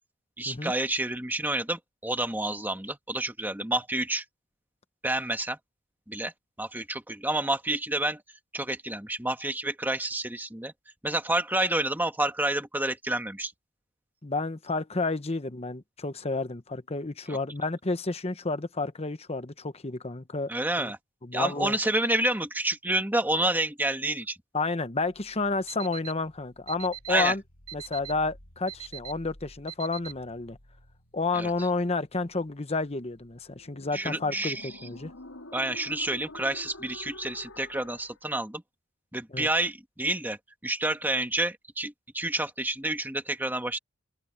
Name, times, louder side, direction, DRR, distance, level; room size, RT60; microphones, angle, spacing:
voice 1, 0.4-4.2 5.0-5.6 6.1-6.3 6.6-8.2 8.5-10.7 11.0-13.5 17.3-17.4 20.5-21.0 21.3-24.4 27.1-27.3 31.3-31.5 33.9-34.7 35.5-38.6 39.1-43.8, right 1 dB, 10° right, 1.8 m, -29 dB
voice 2, 14.2-20.5 20.8-20.9 21.2-21.8 24.5-27.4 27.7-30.6 31.1-35.1 39.3-39.5, left 3 dB, 30° left, 1.0 m, -30 dB
sound 1, 25.0-38.2, left 1 dB, 70° left, 4.2 m, -50 dB
Alarm, 25.7-26.1 26.7-27.1 27.7-28.1 28.7-29.1 29.7-30.1, right 12 dB, 85° right, 2.5 m, -40 dB
open air
head